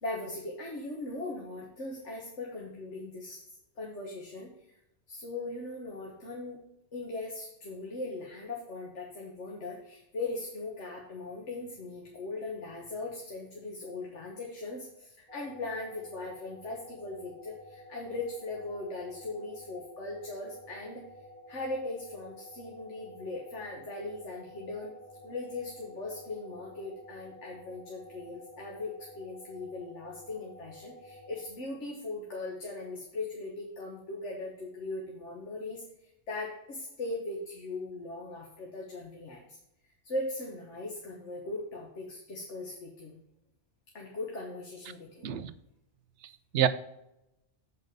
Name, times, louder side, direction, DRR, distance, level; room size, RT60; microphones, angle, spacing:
voice 1, 0.0-3.4 3.8-4.8 5.1-6.6 6.9-21.0 21.5-24.9 25.2-39.6 40.0-43.2 43.9-45.3, left 2 dB, 85° left, -1 dB, 1.6 m, -39 dB
sound 1, 15.3-31.5, left 1 dB, 30° left, 2.7 m, -51 dB
voice 2, 45.2-45.5 46.2-46.7, right 10 dB, 80° right, 13 dB, 0.9 m, -28 dB
7.9 x 5.4 x 5.2 m, 0.85 s
omnidirectional pair, 1.2 m